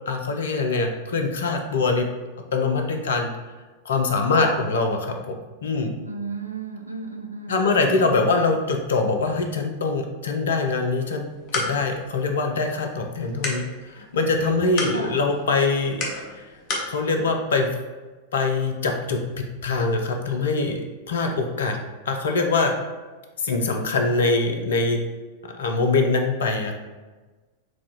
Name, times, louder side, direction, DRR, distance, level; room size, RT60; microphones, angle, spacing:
voice 1, 0.1-2.1 2.5-3.3 3.8-5.4 5.6-5.9 7.5-11.3 11.5-16.4 16.9-17.8 18.3-21.8 22.1-22.8 23.4-25.0 25.4-26.7, left 3 dB, 65° left, 4 dB, 0.5 m, -23 dB
voice 2, 4.3-4.6 6.0-8.5 14.9-15.2, right 3 dB, 85° right, 3 dB, 0.5 m, -35 dB
sound 1, 11.2-16.9, left 2 dB, 40° left, 0.9 m, -33 dB
6.0 x 2.3 x 3.0 m, 1.3 s
figure-of-eight pair, 90°, 0 cm